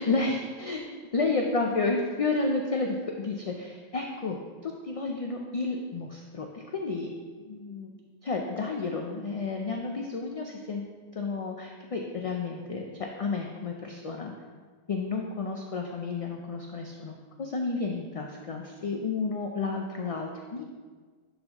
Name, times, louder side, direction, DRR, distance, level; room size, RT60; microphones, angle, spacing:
voice 1, 0.0-0.8 1.1-4.4 4.6-7.1 7.4-7.9 8.2-10.8 11.1-14.3 14.9-17.1 17.4-20.6, left 3 dB, 50° left, 1 dB, 0.4 m, -31 dB
10.5 x 4.0 x 2.9 m, 1.5 s
omnidirectional pair, 1.1 m